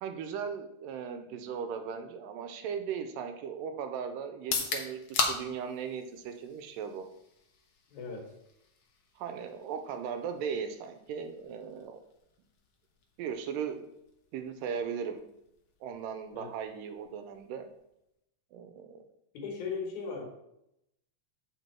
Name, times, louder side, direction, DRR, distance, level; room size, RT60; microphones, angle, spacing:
voice 1, 0.0-7.1 9.2-12.0 13.2-13.9 14.3-15.2 15.8-17.7 18.5-19.0, right 7 dB, 85° right, 7 dB, 2.3 m, -37 dB
sound 1, 4.3-18.2, left 4 dB, 90° left, 1.1 m, -41 dB
voice 2, 7.9-8.3 16.3-16.5 19.3-20.3, left 5 dB, 65° left, 1 dB, 2.7 m, -37 dB
8.1 x 5.3 x 4.5 m, 0.82 s
omnidirectional pair, 3.9 m